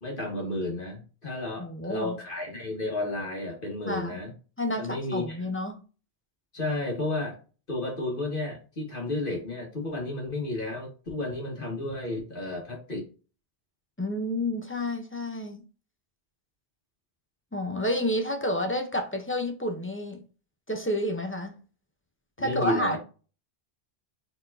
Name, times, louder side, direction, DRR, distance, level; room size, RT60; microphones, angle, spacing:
voice 1, 0.0-4.3 4.8-5.4 6.5-7.4 7.7-13.0 22.4-23.0, left 2 dB, 55° left, 1.9 m, -32 dB
voice 2, 1.6-2.2 3.9-4.2 4.6-5.8 14.0-15.6 17.5-20.2 20.7-21.5 22.4-23.0, left 1 dB, 15° left, 0.8 m, -30 dB
4.4 x 4.0 x 2.7 m
omnidirectional pair, 1.1 m